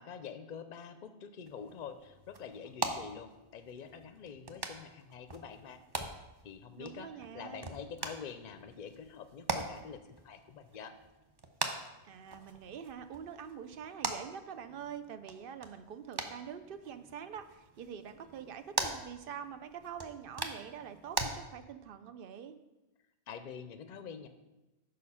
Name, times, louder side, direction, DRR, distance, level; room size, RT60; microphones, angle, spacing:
voice 1, 0.0-5.8 6.4-10.9 23.3-24.3, left 6 dB, 55° left, 9 dB, 0.6 m, -46 dB
sound 1, 1.4-21.3, right 3 dB, 30° right, 0.5 m, -42 dB
voice 2, 6.8-7.7 12.0-22.6, right 8 dB, 60° right, 10 dB, 0.7 m, -45 dB
6.6 x 5.2 x 5.5 m, 1.0 s
omnidirectional pair, 1.1 m